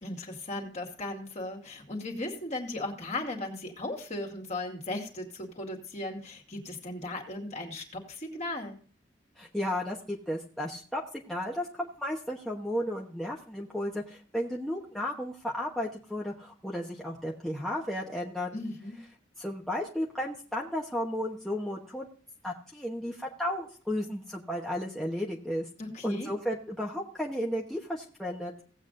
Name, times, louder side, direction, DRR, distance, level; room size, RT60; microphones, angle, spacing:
voice 1, 0.0-8.8 18.5-19.0 25.8-26.3, left 2 dB, 40° left, 2 dB, 2.3 m, -37 dB
voice 2, 9.4-11.0 11.3-18.5 19.4-22.1 22.4-25.7 26.0-28.5, equal, ahead, -3 dB, 1.1 m, -33 dB
18.0 x 8.2 x 2.6 m, 0.43 s
head